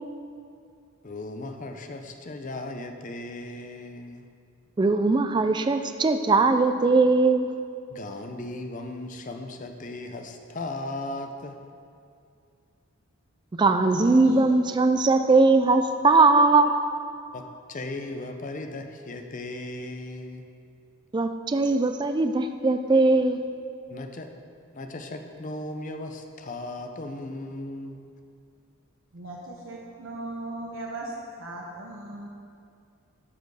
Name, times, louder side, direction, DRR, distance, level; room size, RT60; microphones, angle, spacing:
voice 1, 1.0-4.2 7.9-11.6 17.3-20.4 23.9-24.3 24.7-28.1, left 2 dB, 35° left, 5 dB, 0.5 m, -37 dB
voice 2, 4.8-7.5 13.6-16.7 21.1-23.4, right 3 dB, 20° right, 7 dB, 0.3 m, -20 dB
voice 3, 13.9-14.5 29.1-31.1 31.4-32.3, right 2 dB, 60° right, -2 dB, 0.9 m, -38 dB
12.5 x 4.6 x 4.8 m, 2.4 s
head